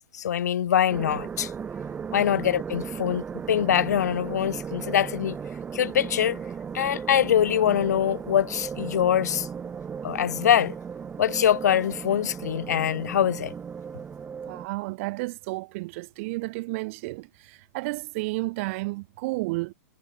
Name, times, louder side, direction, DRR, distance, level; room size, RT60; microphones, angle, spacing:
voice 1, 0.1-1.5 2.1-5.4 5.7-6.4 6.7-9.5 10.0-10.8 11.2-13.5, left 10 dB, 80° left, 4.1 m, -24 dB
sound 1, 0.9-14.7, right 6 dB, 15° right, 4.1 m, -36 dB
voice 2, 14.5-19.7, right 23 dB, 50° right, 7.0 m, -32 dB
hypercardioid pair, 135°, 9 cm